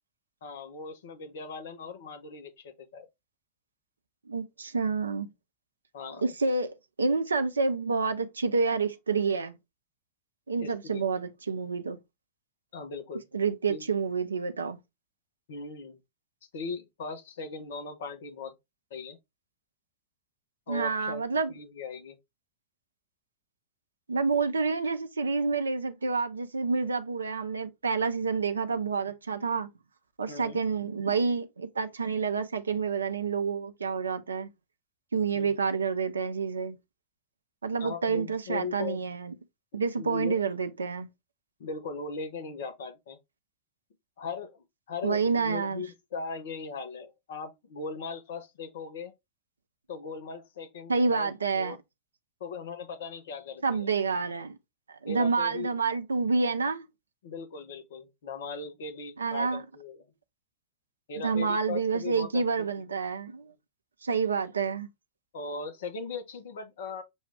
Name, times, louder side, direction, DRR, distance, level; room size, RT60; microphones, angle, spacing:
voice 1, 0.4-3.1 5.9-6.3 10.6-11.0 12.7-13.2 13.7-13.8 15.5-16.0 16.5-18.5 18.9-19.2 20.7-21.2 21.5-22.2 30.3-30.6 35.3-35.6 37.8-39.0 40.0-40.4 41.6-43.2 44.2-49.1 49.9-51.8 52.4-53.9 55.1-55.7 57.2-60.1 61.1-62.7 65.3-67.0, left 4 dB, 60° left, 0.8 m, -39 dB
voice 2, 4.3-5.3 6.2-9.5 10.5-12.0 13.3-14.8 20.7-21.5 24.1-29.7 30.2-34.5 35.1-36.8 37.6-39.3 39.7-41.1 45.0-45.8 50.9-51.8 53.6-54.6 55.0-56.9 59.2-59.6 61.2-63.5 64.0-64.9, right 4 dB, 75° right, 0.5 m, -28 dB
6.1 x 2.4 x 3.3 m
figure-of-eight pair, 90°, 0 cm